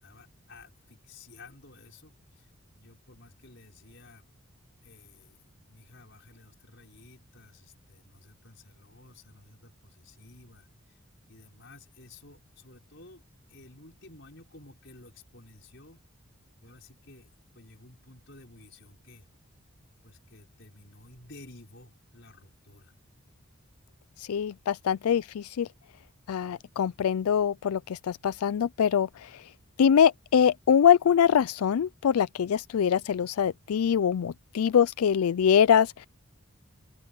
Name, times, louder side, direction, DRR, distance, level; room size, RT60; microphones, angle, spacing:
voice 1, 0.0-2.5 2.8-4.3 4.8-11.0 11.3-13.2 13.5-16.0 16.6-19.3 20.0-22.9, left 2 dB, 55° left, 5.8 m, -53 dB
voice 2, 24.2-25.7 26.3-29.4 29.8-36.1, left 8 dB, 90° left, 0.4 m, -24 dB
open air
head